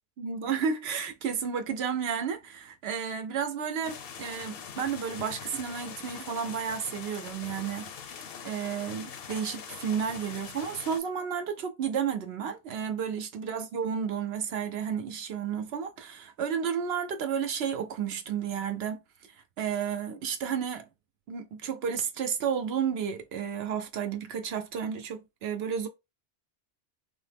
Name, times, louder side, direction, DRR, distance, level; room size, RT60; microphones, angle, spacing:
voice 1, 0.2-7.9 8.4-19.0 19.6-20.9 21.3-25.9, right 7 dB, 75° right, 0.8 m, -32 dB
sound 1, 3.8-11.0, left 7 dB, 65° left, 0.7 m, -43 dB
3.3 x 2.0 x 3.3 m
omnidirectional pair, 1.1 m